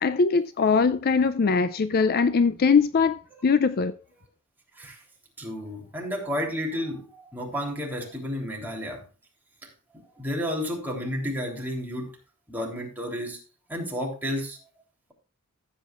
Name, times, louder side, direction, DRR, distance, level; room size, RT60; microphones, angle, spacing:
voice 1, 0.0-3.9, left 5 dB, 45° left, 0.4 m, -21 dB
voice 2, 5.4-9.0 9.6-9.7 10.2-12.1 12.5-13.4 13.7-14.6, equal, 10° right, 3.4 m, -31 dB
15.0 x 8.3 x 2.5 m
head